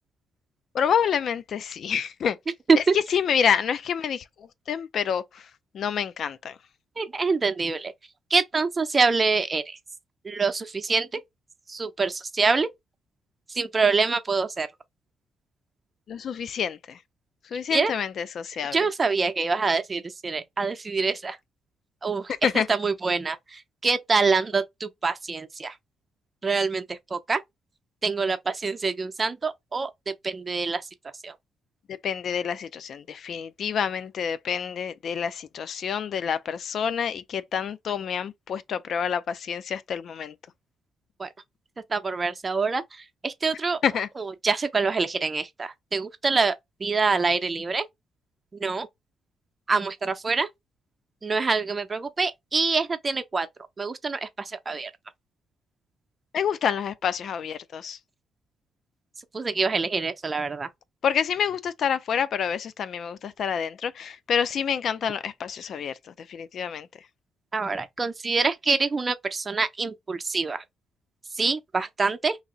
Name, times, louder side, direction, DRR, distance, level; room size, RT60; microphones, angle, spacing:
voice 1, 0.7-2.4 3.1-5.4 5.7-6.6 16.1-17.0 17.5-18.8 22.4-22.7 32.0-40.3 43.8-44.1 56.3-58.0 61.0-65.9 66.3-66.9, left 7 dB, 60° left, 0.4 m, -28 dB
voice 2, 7.0-7.9 8.3-9.8 10.2-11.2 11.7-12.7 13.5-14.7 17.7-17.9 18.7-21.4 22.0-25.8 26.4-27.4 28.0-29.9 30.2-30.8 31.2-31.3 41.2-41.3 41.9-43.8 44.2-46.5 46.8-47.8 48.5-48.9 49.7-50.5 51.2-53.5 53.8-54.9 59.3-60.7 67.5-70.6 71.3-72.4, right 4 dB, 30° right, 0.6 m, -25 dB
2.9 x 2.7 x 3.8 m
cardioid pair, 90°, 0 cm